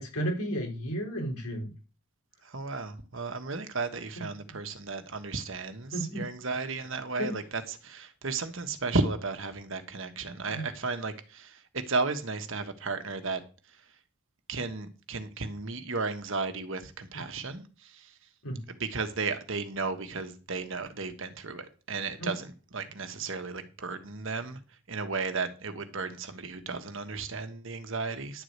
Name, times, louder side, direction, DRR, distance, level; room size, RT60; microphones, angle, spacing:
voice 1, 0.0-1.7 4.2-4.3 5.9-6.2 7.2-7.3 10.5-10.7 18.4-18.6 22.2-22.3, right 1 dB, 80° left, 4.1 m, -33 dB
voice 2, 2.4-13.4 14.5-18.1 18.7-24.6 24.9-28.4, right 3 dB, 60° right, 1.3 m, -34 dB
11.0 x 4.8 x 8.0 m
head